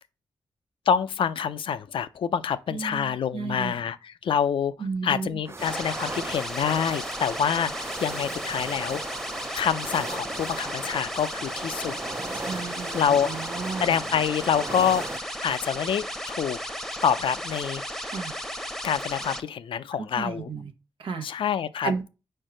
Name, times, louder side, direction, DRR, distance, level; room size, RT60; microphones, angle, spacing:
voice 1, 0.9-4.7 5.0-9.0 9.5-12.0 12.9-13.3 13.8-16.6 17.0-17.8 18.8-20.5 21.2-22.1, left 8 dB, 85° left, 0.4 m, -26 dB
voice 2, 2.7-3.8 4.8-5.4 12.3-13.9 18.1-18.3 20.1-20.7 21.0-21.3 21.8-22.1, right 5 dB, 80° right, 0.9 m, -33 dB
sound 1, 5.4-15.2, right 3 dB, 30° right, 0.4 m, -37 dB
sound 2, 5.6-19.4, equal, 5° left, 0.8 m, -35 dB
4.5 x 4.5 x 5.0 m
cardioid pair, 65°, 9 cm